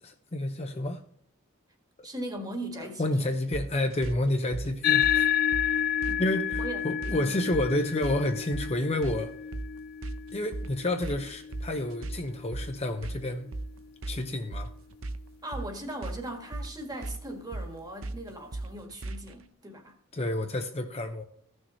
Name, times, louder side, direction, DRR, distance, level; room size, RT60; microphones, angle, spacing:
voice 1, 0.0-1.0 2.8-5.3 5.6-5.8 6.2-9.3 10.3-13.5 14.1-14.7 20.1-21.2, left 1 dB, 30° left, 0.8 m, -30 dB
voice 2, 2.0-3.3 6.0-6.2 6.6-7.3 15.4-19.9, right 1 dB, 20° right, 1.7 m, -39 dB
sound 1, 3.5-19.4, right 2 dB, 75° right, 0.8 m, -38 dB
sound 2, 4.8-13.6, left 9 dB, 45° left, 0.4 m, -30 dB
15.5 x 6.4 x 3.1 m
head